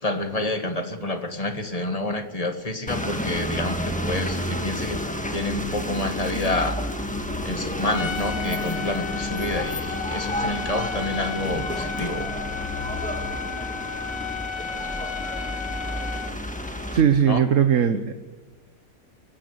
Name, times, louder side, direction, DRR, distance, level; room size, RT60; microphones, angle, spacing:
voice 1, 0.0-5.0 5.3-6.8 7.4-12.3 17.3-17.4, left 2 dB, 25° left, 7 dB, 1.7 m, -28 dB
sound 1, 2.9-17.0, equal, 5° left, 1.6 m, -30 dB
Trumpet, 7.9-16.4, left 7 dB, 65° left, 1.5 m, -34 dB
voice 2, 16.9-18.1, right 8 dB, 60° right, 8 dB, 1.4 m, -19 dB
23.0 x 11.5 x 9.7 m, 1.3 s
omnidirectional pair, 1.5 m